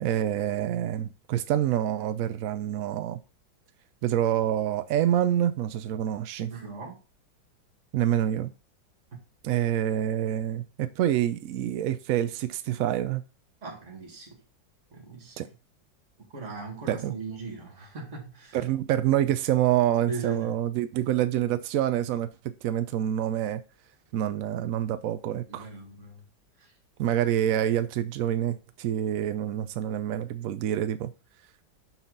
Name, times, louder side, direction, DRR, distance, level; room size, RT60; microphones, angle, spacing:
voice 1, 0.0-3.2 4.0-6.5 7.9-8.5 9.4-13.2 15.4-15.5 16.9-17.1 18.5-22.3 22.6-23.6 24.1-25.7 27.0-31.1, right 11 dB, 80° right, 0.7 m, -27 dB
voice 2, 6.5-7.0 13.6-14.4 14.9-15.5 16.3-18.6 20.1-20.6 25.5-26.2 26.6-26.7, right 4 dB, 40° right, 2.3 m, -39 dB
6.1 x 5.6 x 3.9 m
omnidirectional pair, 2.0 m